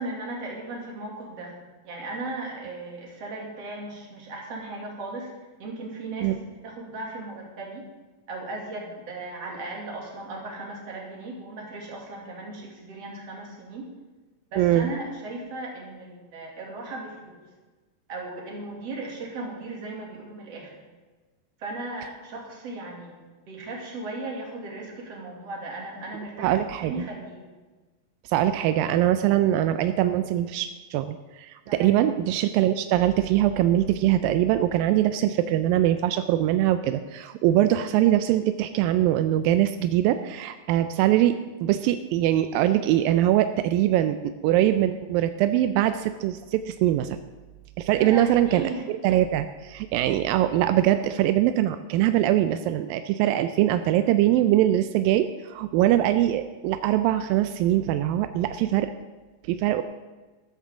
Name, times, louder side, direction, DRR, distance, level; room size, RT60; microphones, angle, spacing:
voice 1, 0.0-1.6 1.8-5.3 5.6-7.8 8.3-13.9 14.5-17.4 18.1-20.7 21.6-23.2 23.5-27.5 31.7-32.0 48.0-48.9, right 2 dB, 45° right, -2 dB, 3.4 m, -36 dB
voice 2, 14.6-14.9 26.4-27.1 28.3-41.4 41.6-47.1 47.8-58.9 59.5-59.8, right 12 dB, 85° right, 10 dB, 2.3 m, -22 dB
14.0 x 13.0 x 3.7 m, 1.3 s
omnidirectional pair, 4.0 m